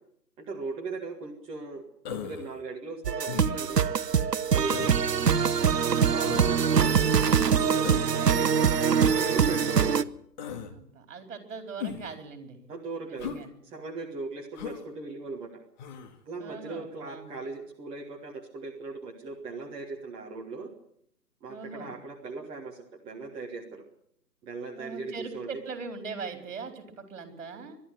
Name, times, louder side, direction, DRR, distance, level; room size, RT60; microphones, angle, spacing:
voice 1, 0.4-1.8 2.1-3.8 4.5-4.9 6.0-7.2 7.5-10.1 12.7-15.6 16.2-20.7 21.4-23.8 24.4-25.5, right 3 dB, 10° right, 0 dB, 1.5 m, -39 dB
Human voice, 2.0-2.5 3.3-3.8 4.7-5.0 6.2-6.6 7.8-8.2 9.0-9.3 10.4-10.7 11.8-12.2 13.2-13.4 14.5-14.8 15.8-16.1, left 7 dB, 30° left, 1.9 m, -37 dB
sound 1, 3.0-10.0, right 7 dB, 75° right, 0.9 m, -23 dB
voice 2, 5.7-6.2 10.7-12.6 13.1-13.5 16.4-17.3 21.5-22.0 24.7-27.8, right 4 dB, 50° right, 6 dB, 4.5 m, -41 dB
23.0 x 12.5 x 9.2 m, 0.69 s
figure-of-eight pair, 140°, 49 cm